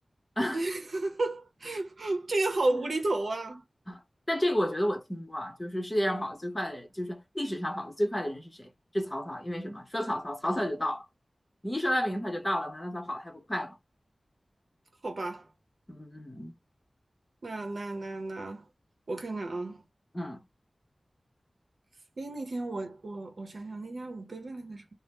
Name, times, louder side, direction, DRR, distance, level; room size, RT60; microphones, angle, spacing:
voice 1, 0.5-3.6 15.0-15.5 17.4-18.6 19.1-19.8 22.2-24.9, right 2 dB, 65° right, 0.8 m, -32 dB
voice 2, 4.3-11.1 11.6-13.8 15.9-16.6 20.1-20.4, equal, 20° left, 0.8 m, -31 dB
2.7 x 2.0 x 3.4 m
wide cardioid pair, 85°, 0 cm